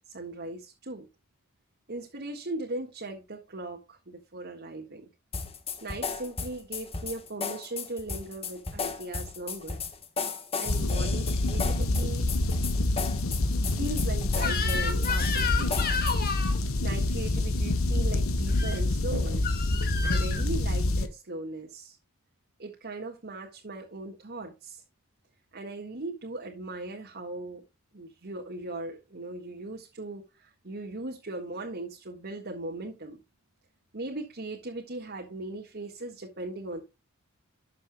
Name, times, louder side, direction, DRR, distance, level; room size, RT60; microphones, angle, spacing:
voice 1, 0.1-1.1 1.9-5.1 5.8-9.8 10.6-12.2 13.8-15.9 16.8-19.5 20.0-22.0 22.6-24.8 25.5-27.6 27.9-33.2 33.9-36.8, right 2 dB, 50° right, 1.7 m, -38 dB
sound 1, 5.3-16.4, left 4 dB, 25° left, 1.3 m, -35 dB
sound 2, 10.7-21.1, left 2 dB, 70° left, 1.2 m, -27 dB
Crying sobbing / Screech, 14.4-16.6 18.5-18.8 19.4-20.4, left 6 dB, 45° left, 2.1 m, -31 dB
13.0 x 7.1 x 2.3 m
head